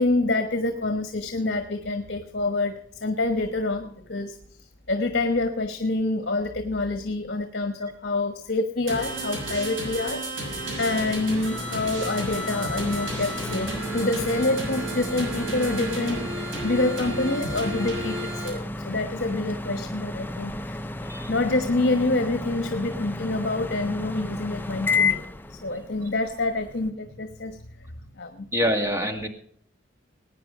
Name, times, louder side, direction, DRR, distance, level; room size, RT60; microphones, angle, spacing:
voice 1, 0.0-4.4 4.9-20.8 21.3-27.6 28.0-28.5, left 2 dB, 55° left, 7 dB, 1.3 m, -27 dB
sound 1, 8.9-18.5, right 1 dB, 75° right, 6.9 m, -32 dB
sound 2, 10.4-26.9, left 3 dB, 10° left, 0.5 m, -33 dB
voice 2, 28.5-29.3, equal, 15° right, 5 dB, 2.0 m, -25 dB
19.5 x 9.3 x 5.0 m, 0.65 s
head